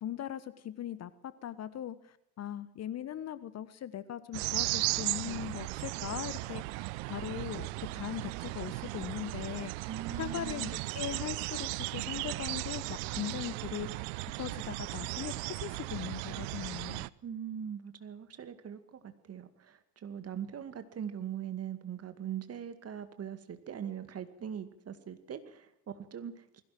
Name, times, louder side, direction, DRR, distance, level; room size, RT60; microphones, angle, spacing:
voice 1, 0.0-6.8 7.1-9.9 10.2-14.1 14.4-17.1, left 10 dB, 35° left, 15 dB, 1.2 m, -40 dB
sound 1, 4.3-17.1, right 22 dB, 55° right, 0.8 m, -36 dB
voice 2, 9.9-10.7 17.2-26.6, right 9 dB, 30° right, 10 dB, 2.3 m, -41 dB
20.5 x 17.0 x 7.8 m, 0.79 s
hypercardioid pair, 80°, 47 cm